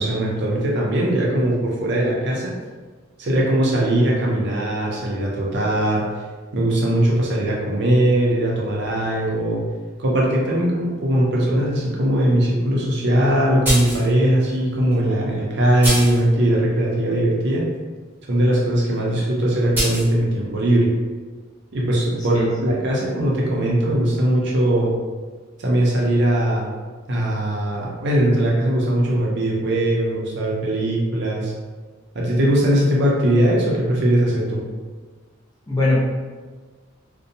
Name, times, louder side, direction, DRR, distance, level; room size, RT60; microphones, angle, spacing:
voice 1, 0.0-2.5 3.2-6.1 6.5-9.7 10.0-17.7 18.3-20.9 21.7-24.9 25.6-26.7 27.1-31.5 32.1-34.6, right 1 dB, 60° right, -3 dB, 0.6 m, -20 dB
sound 1, 13.6-14.1 14.9-15.0 15.8-16.2 19.7-20.1, equal, 10° right, 0.9 m, -23 dB
voice 2, 22.3-22.8 35.7-36.0, left 2 dB, 20° left, -6 dB, 0.6 m, -21 dB
2.6 x 2.2 x 2.6 m, 1.4 s
head